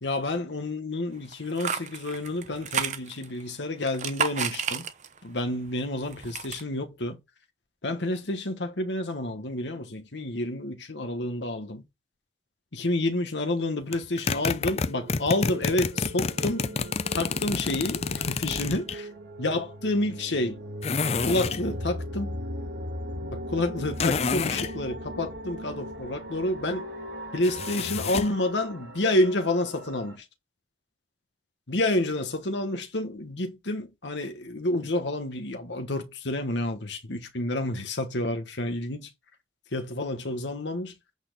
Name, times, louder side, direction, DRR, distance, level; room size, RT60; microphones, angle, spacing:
voice 1, 0.0-4.9 5.2-7.2 7.8-11.8 12.7-16.8 17.1-19.1 19.4-20.6 21.3-22.4 23.3-26.9 27.3-30.2 31.7-39.1 39.7-40.9, left 1 dB, 90° left, 1.3 m, -29 dB
sound 1, 1.3-3.4 3.8-5.3 5.7-6.6, right 6 dB, 40° right, 0.9 m, -31 dB
sound 2, 13.9-19.0 20.8-21.6 24.0-24.7 27.4-28.4, left 4 dB, 35° left, 0.5 m, -28 dB
sound 3, 14.1-30.2, equal, 85° right, 2.3 m, -39 dB
8.7 x 4.2 x 6.7 m
head